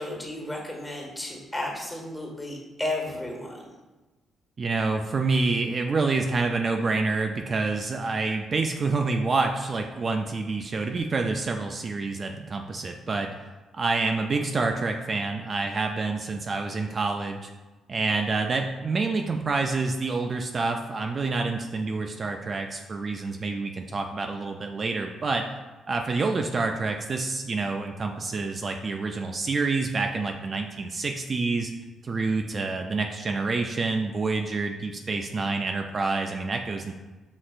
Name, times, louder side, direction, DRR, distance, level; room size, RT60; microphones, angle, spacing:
voice 1, 0.0-3.6, left 1 dB, 15° left, -1 dB, 1.0 m, -33 dB
voice 2, 4.6-13.3 13.7-17.5 17.9-25.4 25.9-31.7 32.0-36.9, right 3 dB, 40° right, 3 dB, 0.3 m, -27 dB
6.0 x 3.2 x 2.4 m, 1.2 s
cardioid pair, 90°, 0 cm